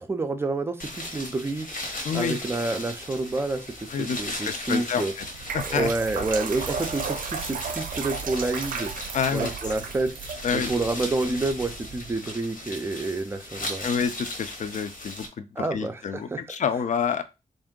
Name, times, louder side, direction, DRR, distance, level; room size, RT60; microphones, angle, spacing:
voice 1, 0.0-5.1 5.6-10.1 10.5-13.9 15.6-16.4, right 2 dB, 15° right, 0.4 m, -29 dB
sound 1, 0.8-15.3, left 1 dB, 85° left, 1.2 m, -38 dB
voice 2, 2.0-2.4 3.9-4.2 4.4-5.1 5.5-5.9 9.1-9.5 10.4-10.7 13.8-17.2, left 6 dB, 60° left, 0.5 m, -28 dB
sound 2, 5.2-12.2, right 6 dB, 80° right, 0.5 m, -34 dB
3.6 x 2.6 x 3.7 m
wide cardioid pair, 170°, 14 cm